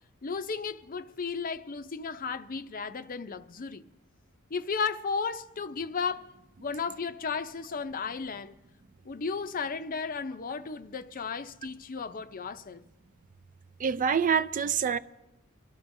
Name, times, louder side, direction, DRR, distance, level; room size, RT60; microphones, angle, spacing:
voice 1, 0.2-3.8 4.5-6.3 6.6-8.5 9.0-12.8, left 5 dB, 40° left, 0.6 m, -34 dB
voice 2, 13.8-15.0, right 6 dB, 40° right, 0.4 m, -26 dB
24.5 x 13.0 x 2.7 m
head